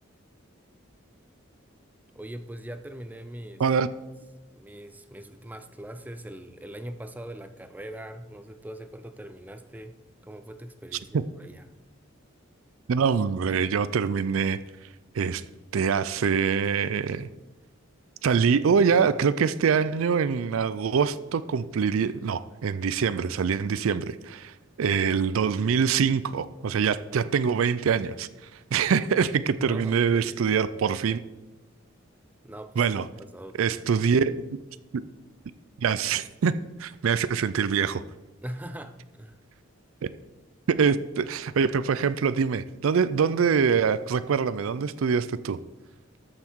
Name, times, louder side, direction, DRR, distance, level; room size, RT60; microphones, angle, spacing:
voice 1, 2.1-3.6 4.5-10.0 10.2-11.7 29.6-30.4 32.4-34.3 38.4-39.4, right 1 dB, 10° right, 10 dB, 0.4 m, -41 dB
voice 2, 12.9-14.6 15.1-15.4 15.7-17.3 18.2-28.3 28.7-31.2 32.8-33.1 33.6-34.3 34.9-35.0 35.8-36.5 36.8-38.0 40.7-45.6, right 6 dB, 85° right, 15 dB, 0.4 m, -24 dB
13.0 x 5.8 x 4.5 m, 1.0 s
head